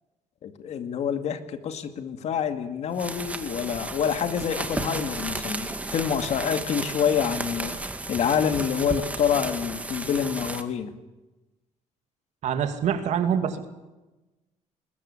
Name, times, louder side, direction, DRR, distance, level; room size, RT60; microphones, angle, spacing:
voice 1, 0.4-7.7 8.1-10.9, left 8 dB, 55° left, 8 dB, 2.3 m, -27 dB
sound 1, 2.9-10.6, right 2 dB, 10° right, 2.0 m, -33 dB
voice 2, 12.4-13.7, right 8 dB, 65° right, 8 dB, 2.6 m, -25 dB
22.5 x 20.0 x 8.5 m, 1.1 s
cardioid pair, 135°, 13 cm